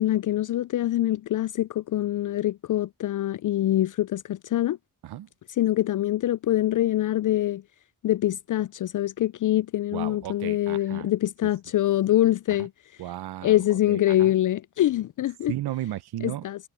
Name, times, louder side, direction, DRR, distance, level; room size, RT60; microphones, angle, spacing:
voice 1, 0.0-4.8 5.6-7.6 8.0-12.7 13.4-15.5 16.2-16.6, left 13 dB, 55° left, 0.4 m, -24 dB
voice 2, 9.9-11.1 11.4-11.5 12.5-12.7 13.0-14.3 15.5-16.5, right 14 dB, 85° right, 0.8 m, -35 dB
supercardioid pair, 50°, 38 cm